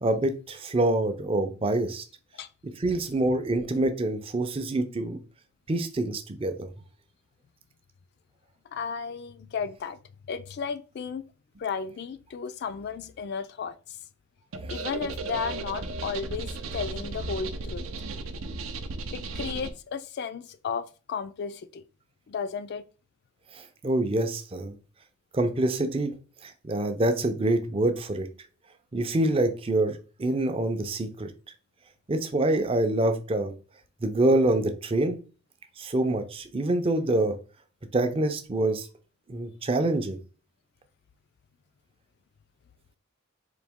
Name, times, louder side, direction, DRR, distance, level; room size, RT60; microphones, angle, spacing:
voice 1, 0.0-2.0 2.8-5.2 5.7-6.7 23.8-24.7 25.3-26.1 26.4-28.3 28.9-31.3 32.1-33.5 34.0-35.2 35.8-37.4 37.9-38.9 39.3-40.2, right 2 dB, 25° right, 0.5 m, -26 dB
voice 2, 8.7-10.0 10.3-11.2 11.6-14.0 14.7-17.8 19.1-21.8 22.3-22.8, left 6 dB, 50° left, 0.3 m, -34 dB
sound 1, 14.5-19.7, right 3 dB, 75° right, 0.6 m, -35 dB
4.0 x 2.8 x 3.5 m
head